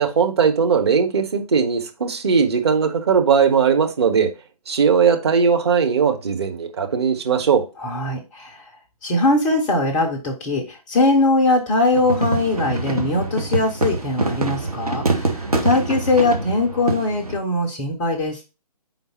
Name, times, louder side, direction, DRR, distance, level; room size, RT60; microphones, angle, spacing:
voice 1, 0.0-4.3 4.7-7.6, right 6 dB, 45° right, 1.2 m, -18 dB
voice 2, 7.8-8.6 9.0-18.4, left 2 dB, 5° left, 0.4 m, -21 dB
sound 1, 11.9-17.4, right 2 dB, 75° right, 1.5 m, -24 dB
5.1 x 3.9 x 5.6 m
figure-of-eight pair, 135°, 19 cm